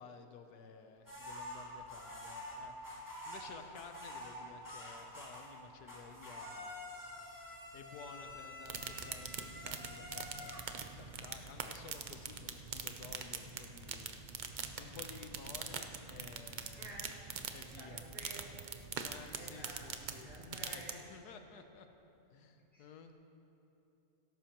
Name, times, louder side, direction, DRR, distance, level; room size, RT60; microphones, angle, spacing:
voice 1, 0.0-6.8 7.7-14.1 14.8-16.9 17.5-18.0 19.0-20.3 20.6-21.9 22.3-23.1, left 5 dB, 80° left, 6 dB, 1.3 m, -54 dB
sound 1, 1.1-5.6 5.9-13.6, left 1 dB, 10° left, 2.3 m, -49 dB
sound 2, 8.6-20.9, right 5 dB, 90° right, 0.4 m, -44 dB
voice 2, 16.8-17.1 17.8-18.6 19.3-19.9 20.2-21.0 22.7-23.1, right 1 dB, 50° right, -7 dB, 3.1 m, -52 dB
17.0 x 13.5 x 3.0 m, 2.9 s
omnidirectional pair, 1.7 m